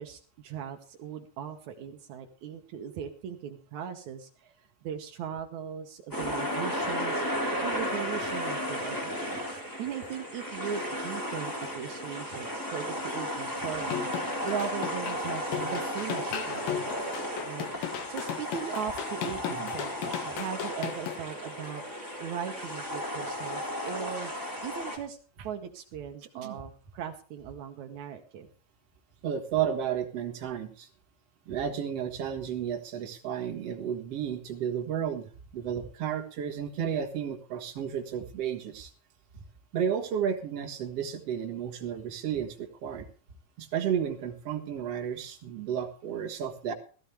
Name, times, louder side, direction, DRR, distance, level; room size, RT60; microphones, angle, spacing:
voice 1, 0.0-4.5 4.8-16.8 17.4-21.8 22.2-24.3 24.6-25.2 25.4-28.5, right 8 dB, 85° right, 4 dB, 1.6 m, -39 dB
sound 1, 6.1-25.0, equal, 5° left, 2.3 m, -34 dB
sound 2, 13.8-21.2, left 9 dB, 65° left, 2.9 m, -36 dB
voice 2, 29.2-30.9 31.5-38.9 39.7-43.1 43.6-46.7, right 8 dB, 55° right, 3 dB, 1.8 m, -32 dB
16.0 x 14.5 x 3.4 m, 0.39 s
omnidirectional pair, 5.1 m